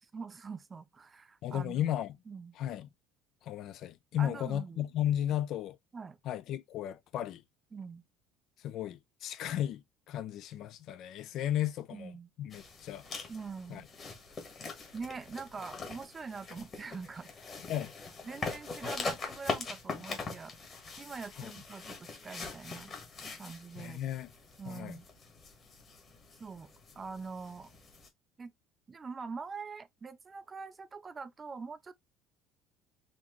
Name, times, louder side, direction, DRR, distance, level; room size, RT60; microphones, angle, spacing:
voice 1, 0.0-1.9 2.3-2.5 4.2-4.9 5.9-6.2 7.7-8.0 11.9-12.3 13.3-13.9 14.9-17.3 18.2-20.5 21.0-22.9 23.4-24.0 24.6-25.1 26.4-26.7 26.9-27.7 28.4-28.5 28.9-31.9, right 5 dB, 20° right, 0.4 m, -43 dB
voice 2, 1.4-2.2 2.6-2.9 3.4-5.8 6.2-7.4 8.6-13.1 13.7-13.9 17.7-17.9 21.4-21.5 23.8-24.3 24.7-25.0, left 11 dB, 50° left, 0.4 m, -35 dB
sound 1, 12.5-28.1, left 4 dB, 30° left, 1.3 m, -42 dB
4.2 x 2.9 x 3.0 m
cardioid pair, 145°, 0 cm